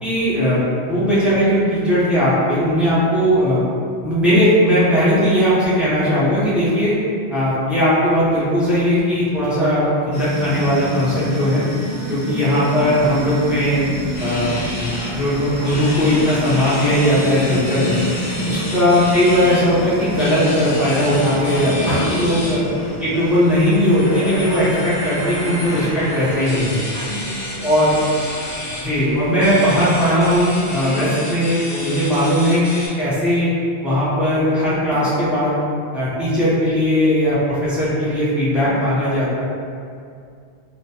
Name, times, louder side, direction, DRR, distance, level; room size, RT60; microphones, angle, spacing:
voice 1, 0.0-3.6 4.0-6.9 7.3-11.6 12.1-13.8 14.2-18.0 18.5-22.6 23.0-26.8 27.6-28.0 28.8-33.5 33.8-35.5 35.9-39.4, equal, ahead, -11 dB, 0.4 m, -18 dB
sound 1, 10.1-24.9, left 1 dB, 35° right, 0.8 m, -29 dB
voice 2, 12.0-12.4 17.6-17.9 18.3-18.7 21.6-22.6 24.6-24.8 26.9-28.0 30.8-31.2 34.9-35.2, right 2 dB, 75° right, -8 dB, 0.8 m, -33 dB
sound 2, 12.8-31.0, left 1 dB, 85° left, 0.9 m, -35 dB
sound 3, 14.1-32.9, left 1 dB, 35° left, 0.8 m, -31 dB
2.2 x 2.1 x 2.8 m, 2.3 s
omnidirectional pair, 1.1 m